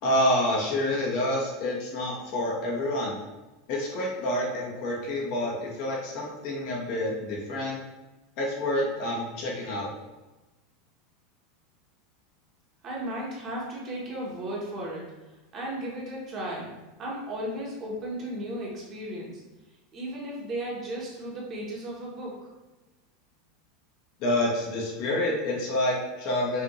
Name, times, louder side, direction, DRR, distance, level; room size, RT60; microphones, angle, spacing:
voice 1, 0.0-3.2 3.7-7.8 8.4-9.9 24.2-26.6, left 1 dB, 50° left, -3 dB, 1.1 m, -28 dB
voice 2, 12.8-15.0 15.5-19.4 19.9-22.4, right 1 dB, 30° right, -3 dB, 1.0 m, -35 dB
5.5 x 2.5 x 3.0 m, 1.1 s
supercardioid pair, 165°, 0 cm